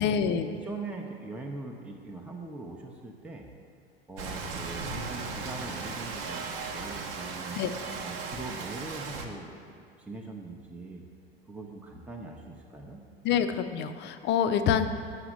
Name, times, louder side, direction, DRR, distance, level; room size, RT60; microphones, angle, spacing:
voice 1, 0.0-0.5 7.6-7.7 13.2-14.9, left 8 dB, 35° left, 9 dB, 0.6 m, -26 dB
voice 2, 0.5-3.5 4.1-6.4 6.7-7.6 8.0-11.0 11.5-13.0, right 3 dB, 5° right, 1 dB, 0.8 m, -41 dB
Rain, 4.2-9.3, right 4 dB, 60° right, 1.1 m, -36 dB
7.9 x 6.0 x 7.4 m, 2.3 s
figure-of-eight pair, 75°, 31 cm